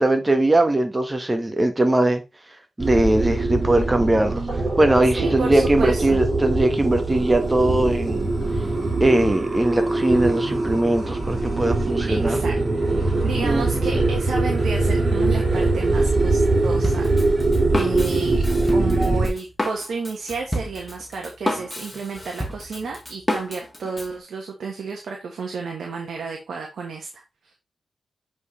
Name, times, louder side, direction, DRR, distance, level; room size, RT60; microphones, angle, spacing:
voice 1, 0.0-2.2 2.8-8.3 9.0-12.4 13.4-13.6 13.9-14.0, right 1 dB, 20° right, 1.5 m, -20 dB
sound 1, 2.8-19.3, right 2 dB, 40° right, 4.5 m, -22 dB
voice 2, 5.2-6.2 12.1-12.6 13.2-17.1 17.7-18.4 18.7-27.1, right 4 dB, 85° right, 1.5 m, -31 dB
Drum kit, 16.8-24.1, left 1 dB, 15° left, 1.9 m, -30 dB
8.2 x 4.6 x 3.3 m
cardioid pair, 80°, 0 cm